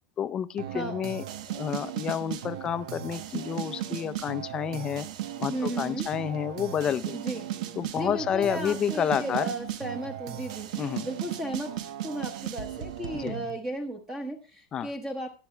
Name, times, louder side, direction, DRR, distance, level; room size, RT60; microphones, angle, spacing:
voice 1, 0.2-1.2 1.5-5.1 5.4-7.2 7.8-9.5 10.8-11.1 13.1-13.4 14.7-14.9, left 9 dB, 20° left, 13 dB, 0.5 m, -30 dB
sound 1, 0.6-13.5, right 12 dB, 70° right, 1.1 m, -36 dB
voice 2, 5.4-6.1 7.1-7.4 8.0-11.8 12.0-15.3, right 1 dB, 10° right, 4 dB, 1.0 m, -35 dB
18.0 x 11.5 x 2.2 m, 0.34 s
supercardioid pair, 170°, 4 cm